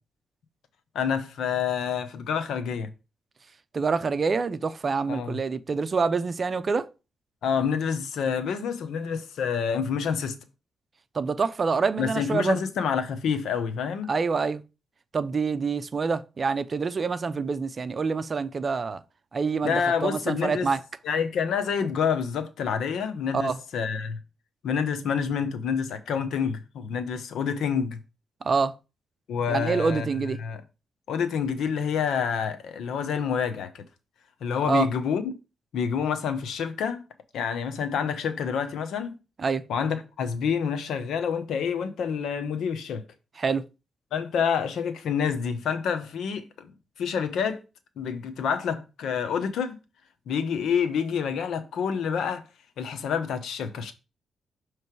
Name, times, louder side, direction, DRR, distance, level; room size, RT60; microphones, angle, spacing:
voice 1, 0.9-2.9 5.1-5.4 7.4-10.4 12.0-14.1 19.6-20.7 21.0-24.2 24.6-28.0 29.3-30.1 30.4-30.6 31.1-33.8 34.4-35.3 35.7-37.0 37.3-39.1 39.7-43.0 44.1-46.7 47.0-47.6 48.0-49.8 50.3-52.5 52.8-53.9, left 7 dB, 85° left, 0.8 m, -28 dB
voice 2, 3.7-6.9 11.1-12.6 14.1-14.6 15.1-19.0 19.3-20.8 23.3-23.6 28.4-28.7 29.5-30.4 34.7-34.9 39.4-39.7 43.4-43.6, right 5 dB, 45° right, 0.6 m, -26 dB
6.7 x 3.2 x 4.6 m
cardioid pair, 80°, 0 cm